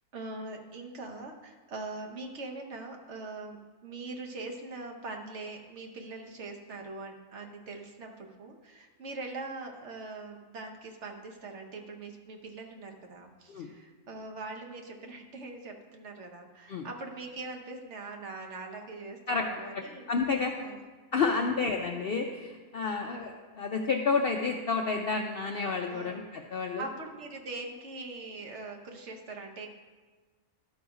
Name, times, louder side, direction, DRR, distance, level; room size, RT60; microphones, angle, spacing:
voice 1, 0.1-20.1 20.6-20.8 21.3-21.5 22.8-23.1 25.9-26.2 26.8-29.7, right 3 dB, 55° right, 2 dB, 1.1 m, -42 dB
voice 2, 19.7-20.5 21.1-26.9, left 4 dB, 65° left, 2 dB, 0.6 m, -30 dB
12.0 x 4.0 x 4.8 m, 1.4 s
omnidirectional pair, 1.5 m